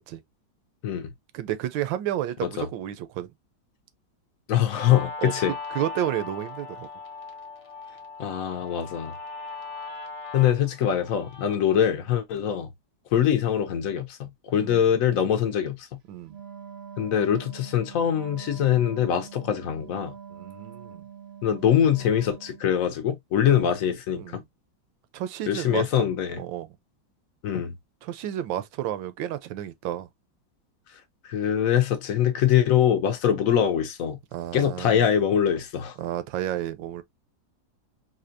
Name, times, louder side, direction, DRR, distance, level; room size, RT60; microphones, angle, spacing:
voice 1, 1.3-3.3 5.2-6.9 14.6-14.8 16.1-16.4 20.4-21.0 23.5-23.7 24.2-24.4 25.1-25.9 26.4-26.7 28.0-30.1 34.3-35.1 36.0-37.0, right 12 dB, 80° right, 1.3 m, -31 dB
voice 2, 4.5-5.5 8.2-9.1 10.3-12.7 13.1-15.9 17.0-20.1 21.4-24.4 25.5-26.4 27.4-27.7 31.2-34.2 34.5-36.0, left 9 dB, 65° left, 0.8 m, -23 dB
Guitar, 4.8-11.7, left 4 dB, 45° left, 0.4 m, -38 dB
Wind instrument woodwind instrument, 16.2-22.7, right 8 dB, 55° right, 0.7 m, -44 dB
4.2 x 2.7 x 2.5 m
omnidirectional pair, 2.0 m